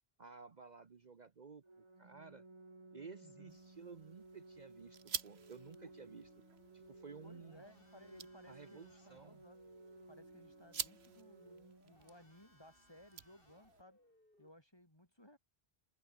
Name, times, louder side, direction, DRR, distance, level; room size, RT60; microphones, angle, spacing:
voice 1, 0.2-2.4 2.9-6.3 6.7-7.6 8.5-9.4, right 5 dB, 45° right, 1.1 m, -54 dB
Organ, 1.6-12.6, right 2 dB, 30° right, 1.8 m, -59 dB
voice 2, 3.2-3.6 5.8-5.9 7.2-9.6 10.1-14.0 14.4-15.4, left 1 dB, 25° left, 5.0 m, -61 dB
sound 1, 3.5-13.8, right 6 dB, 85° right, 1.5 m, -50 dB
sound 2, 5.3-14.5, left 1 dB, 60° left, 7.1 m, -69 dB
open air
omnidirectional pair, 1.0 m